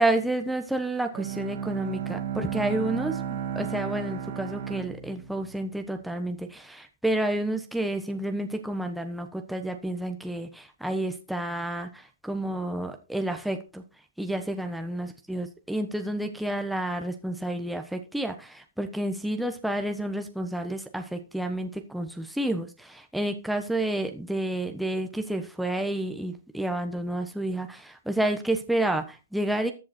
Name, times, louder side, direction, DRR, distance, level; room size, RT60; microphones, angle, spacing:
voice 1, 0.0-13.8 14.2-29.7, right 1 dB, ahead, 5 dB, 1.1 m, -30 dB
Bowed string instrument, 1.1-6.1, right 8 dB, 60° right, 2.5 m, -34 dB
14.0 x 7.6 x 4.3 m, 0.30 s
hypercardioid pair, 150°, 0 cm